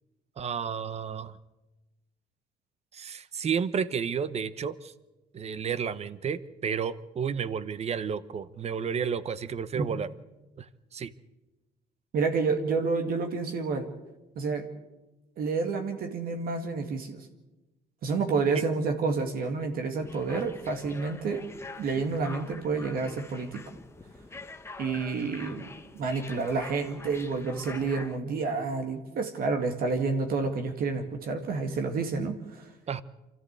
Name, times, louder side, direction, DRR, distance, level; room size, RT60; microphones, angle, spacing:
voice 1, 0.4-1.3 2.9-4.9 5.3-10.1 10.6-11.1 18.5-18.6 32.9-33.0, right 7 dB, 40° right, 17 dB, 0.9 m, -31 dB
voice 2, 12.1-13.9 14.4-14.7 15.4-17.3 18.0-21.5 21.8-23.6 24.8-25.7 25.9-32.7, right 4 dB, 60° right, 5 dB, 2.0 m, -29 dB
sound 1, 20.0-28.2, left 3 dB, 15° left, 1.3 m, -45 dB
25.5 x 14.0 x 8.1 m, 1.1 s
cardioid pair, 110°, 17 cm